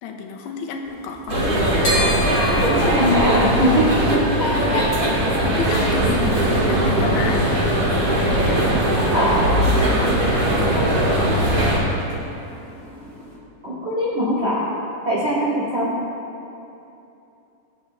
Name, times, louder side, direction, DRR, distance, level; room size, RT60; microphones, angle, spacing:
voice 1, 0.0-1.4 4.4-7.5, left 5 dB, 80° left, 3 dB, 3.0 m, -30 dB
sound 1, 0.8-13.4, equal, 55° left, 1.3 m, -35 dB
sound 2, 1.3-11.8, right 1 dB, 35° right, 1.5 m, -19 dB
voice 2, 2.7-3.7 4.4-4.8 9.1-9.4 13.6-14.7 15.0-15.9, equal, 75° right, -7 dB, 0.6 m, -22 dB
21.5 x 8.0 x 3.1 m, 2.9 s
omnidirectional pair, 5.0 m